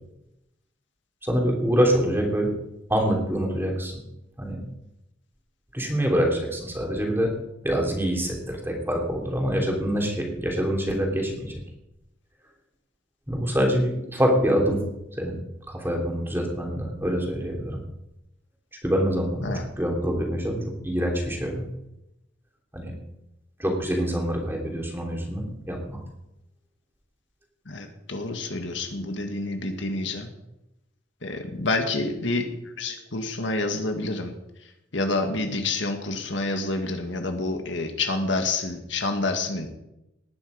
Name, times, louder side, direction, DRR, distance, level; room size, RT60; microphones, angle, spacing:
voice 1, 1.2-2.5 2.9-4.0 4.4-4.6 5.7-7.3 7.6-11.6 13.3-14.8 15.2-15.4 15.7-17.8 18.8-21.7 22.7-22.9 23.6-26.0, equal, 10° right, 0 dB, 3.3 m, -25 dB
voice 2, 27.7-30.3 31.2-34.3 34.9-39.7, left 2 dB, 65° left, 5 dB, 1.9 m, -28 dB
19.0 x 10.5 x 5.2 m, 0.89 s
head